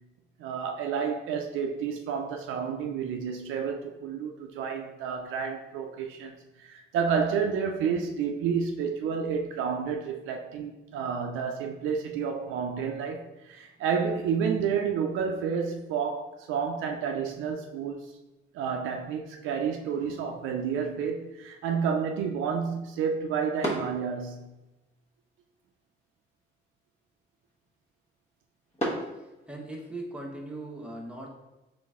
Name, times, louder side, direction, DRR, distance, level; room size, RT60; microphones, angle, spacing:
voice 1, 0.4-18.2 18.5-24.5, right 6 dB, 85° right, 3 dB, 0.4 m, -30 dB
sound 1, 19.9-29.9, equal, 35° left, 1.2 m, -41 dB
voice 2, 29.0-31.3, right 2 dB, 5° right, -1 dB, 0.9 m, -40 dB
3.8 x 3.3 x 3.6 m, 1.0 s
cardioid pair, 90°, 20 cm